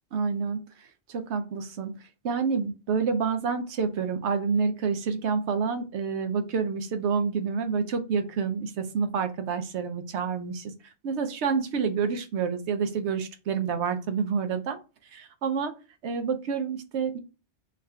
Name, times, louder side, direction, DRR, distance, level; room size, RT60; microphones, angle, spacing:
voice 1, 0.1-0.6 1.1-1.9 2.2-10.7 11.0-14.8 15.1-15.7 16.0-17.2, right 5 dB, 80° right, 8 dB, 0.9 m, -28 dB
3.6 x 2.4 x 4.3 m, 0.32 s
omnidirectional pair, 1.1 m